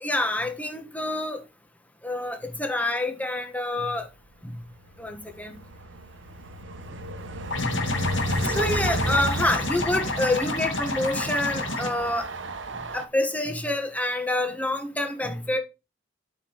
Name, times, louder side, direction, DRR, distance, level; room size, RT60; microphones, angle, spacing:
voice 1, 0.0-1.4 2.0-4.1 4.4-4.6 5.0-5.5 7.6-7.7 8.3-12.3 12.9-15.6, left 1 dB, 10° left, 1.6 m, -27 dB
Train, 4.6-13.0, right 2 dB, 70° right, 1.0 m, -33 dB
sound 1, 7.5-11.9, left 3 dB, 75° left, 2.1 m, -29 dB
8.3 x 5.8 x 4.7 m
head